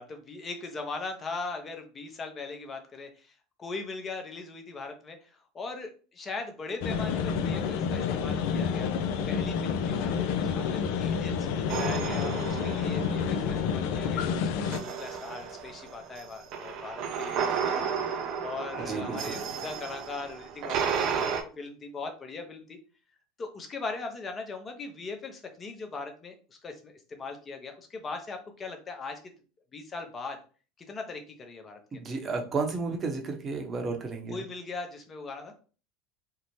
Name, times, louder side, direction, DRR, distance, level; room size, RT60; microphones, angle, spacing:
voice 1, 0.0-8.9 9.3-14.2 14.7-18.1 18.4-22.8 23.4-29.2 29.7-30.4 30.9-32.1 34.3-35.5, left 3 dB, 30° left, 5 dB, 0.7 m, -40 dB
sound 1, 6.8-14.8, left 6 dB, 65° left, 0.3 m, -29 dB
sound 2, 11.7-13.7 14.6-21.4, right 6 dB, 55° right, 0.4 m, -33 dB
voice 2, 18.8-19.4 31.9-34.4, right 4 dB, 30° right, 3 dB, 0.8 m, -32 dB
2.7 x 2.0 x 3.0 m, 0.38 s
hypercardioid pair, 85°, 0 cm